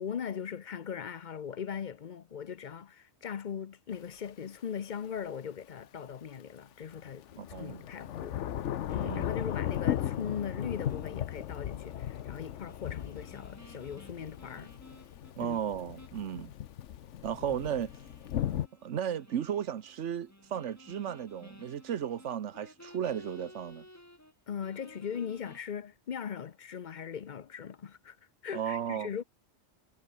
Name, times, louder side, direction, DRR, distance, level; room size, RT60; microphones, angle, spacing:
voice 1, 0.0-8.4 8.9-14.7 15.4-15.6 24.5-28.2 28.4-29.2, left 7 dB, 45° left, 0.7 m, -39 dB
Thunder / Rain, 3.9-4.0 6.9-18.7, left 11 dB, 80° left, 1.1 m, -37 dB
voice 2, 7.4-7.8 9.0-9.3 15.4-16.5 17.2-17.9 18.8-23.8 28.5-29.1, right 9 dB, 80° right, 1.2 m, -34 dB
sound 1, 8.9-15.6 16.0-16.2 16.6-16.7 17.6-24.3 24.6-25.6, left 1 dB, 15° left, 3.6 m, -56 dB
omnidirectional pair, 1.2 m